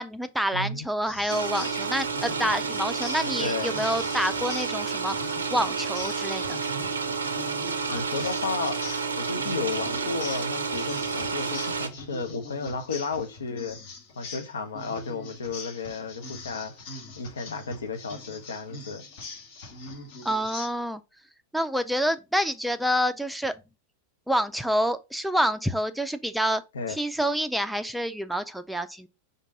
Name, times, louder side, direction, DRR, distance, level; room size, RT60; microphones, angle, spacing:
voice 1, 0.0-5.2 5.5-6.6 20.2-21.0 21.5-23.5 24.3-26.6 26.9-29.1, equal, ahead, 0.4 m, -27 dB
voice 2, 0.5-0.9 3.4-3.7 7.9-8.8 9.2-13.8 14.2-16.9 17.2-19.0 26.7-27.0, left 4 dB, 70° left, 0.6 m, -33 dB
sound 1, 1.1-20.7, left 3 dB, 50° left, 1.1 m, -42 dB
sound 2, 1.3-11.9, right 5 dB, 75° right, 0.5 m, -30 dB
5.2 x 2.6 x 3.6 m
figure-of-eight pair, 90°, 0 cm